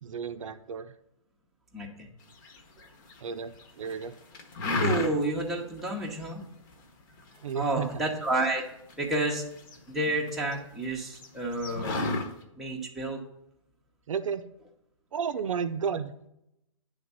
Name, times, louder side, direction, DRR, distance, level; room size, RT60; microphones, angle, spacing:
voice 1, 0.0-0.9 3.2-4.1 7.4-8.0 14.1-14.4 15.1-16.1, right 7 dB, 70° right, 9 dB, 0.6 m, -32 dB
voice 2, 1.7-2.1 4.6-6.4 7.5-8.6 9.0-9.4 9.9-12.0 12.6-13.2, right 2 dB, ahead, -3 dB, 0.8 m, -30 dB
sound 1, 2.4-3.2 3.6-4.0 4.3-5.4 5.8-5.9 6.2-6.7 7.2-9.0 9.3-10.5 10.8-10.9 11.1-12.3, left 2 dB, 35° left, 1.1 m, -31 dB
9.7 x 3.6 x 5.4 m, 0.82 s
hypercardioid pair, 150°, 17 cm